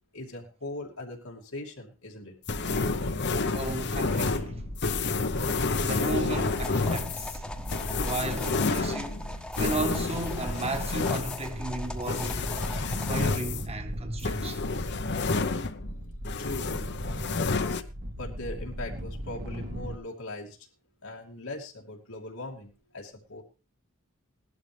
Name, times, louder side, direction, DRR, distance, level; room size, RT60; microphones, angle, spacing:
voice 1, 0.1-2.3 16.4-17.7 18.1-20.6 21.0-23.4, left 2 dB, 90° left, 2.6 m, -41 dB
sound 1, 2.5-16.0 16.2-17.8, left 3 dB, 55° left, 1.0 m, -30 dB
sound 2, 2.5-20.0, equal, 50° right, 1.7 m, -38 dB
voice 2, 3.5-4.7 5.8-7.5 8.0-9.3 9.6-12.5 12.9-14.6, right 2 dB, 30° right, 1.6 m, -35 dB
sound 3, 6.3-13.2, left 1 dB, 5° left, 1.2 m, -42 dB
18.0 x 12.0 x 3.4 m
head